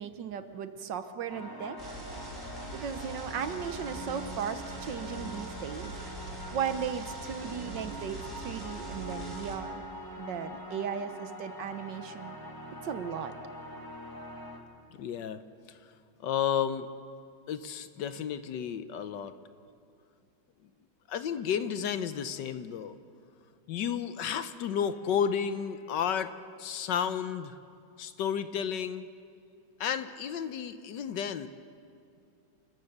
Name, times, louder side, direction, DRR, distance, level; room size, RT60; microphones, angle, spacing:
voice 1, 0.0-2.0 2.7-5.9 6.5-9.8 10.2-12.4 12.7-13.3, right 7 dB, 70° right, 10 dB, 1.5 m, -36 dB
sound 1, 1.3-14.6, equal, 10° left, 1.6 m, -43 dB
sound 2, 1.8-9.6, right 2 dB, 40° right, 3.8 m, -43 dB
voice 2, 14.9-15.4 16.2-16.9 17.5-19.4 21.1-22.9 23.7-26.3 26.6-27.5 28.0-29.0 29.8-31.5, left 8 dB, 70° left, 11 dB, 1.3 m, -32 dB
28.5 x 14.5 x 6.6 m, 2.4 s
omnidirectional pair, 2.1 m